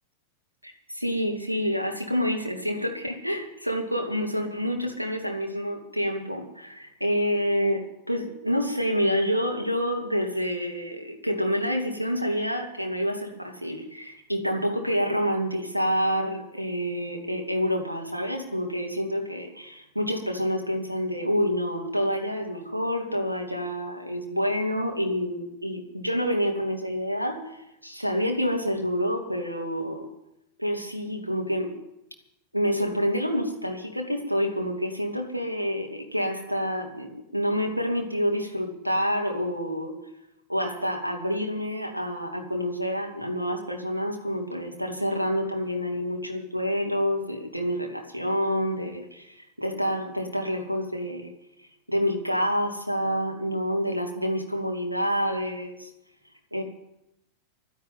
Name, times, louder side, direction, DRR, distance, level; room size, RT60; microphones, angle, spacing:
voice 1, 0.6-30.1 30.6-31.8 32.5-39.9 40.5-51.3 51.9-55.9 56.5-56.6, equal, 90° right, 2 dB, 2.4 m, -28 dB
12.0 x 10.5 x 9.5 m, 0.85 s
figure-of-eight pair, 90°, 0 cm